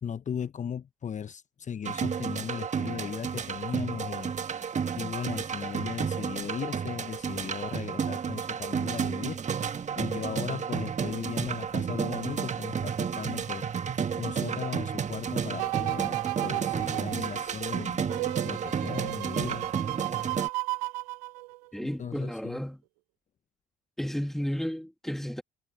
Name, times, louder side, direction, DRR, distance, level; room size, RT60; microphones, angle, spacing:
voice 1, 0.0-4.3 5.0-9.4 9.9-13.6 14.2-16.1 16.4-18.0 18.4-19.7 21.8-22.6, left 8 dB, 40° left, 1.0 m, -37 dB
sound 1, 1.8-20.5, right 7 dB, 35° right, 1.7 m, -32 dB
sound 2, 15.6-21.8 22.3-22.4, right 23 dB, 75° right, 0.9 m, -34 dB
voice 2, 21.7-22.8 24.0-25.4, equal, ahead, 2.6 m, -32 dB
hypercardioid pair, 55°, 20 cm